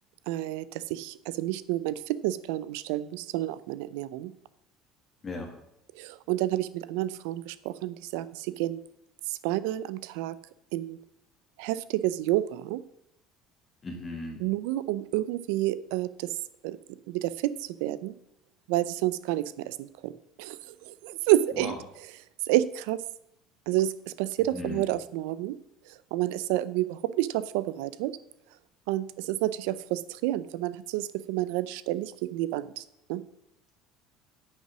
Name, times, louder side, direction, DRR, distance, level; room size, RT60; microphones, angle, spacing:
voice 1, 0.3-4.3 6.0-8.8 9.3-10.4 10.7-11.0 11.6-12.8 14.4-16.4 16.6-16.8 17.1-18.2 18.7-20.1 20.4-21.8 22.4-23.0 23.7-25.6 25.9-28.1 28.9-32.8 33.1-33.2, right 15 dB, 85° right, 16 dB, 0.4 m, -29 dB
voice 2, 13.8-14.4 21.6-21.8 24.5-24.9, left 2 dB, 20° left, 1 dB, 1.3 m, -36 dB
9.2 x 5.5 x 6.0 m, 0.81 s
cardioid pair, 165°, 0 cm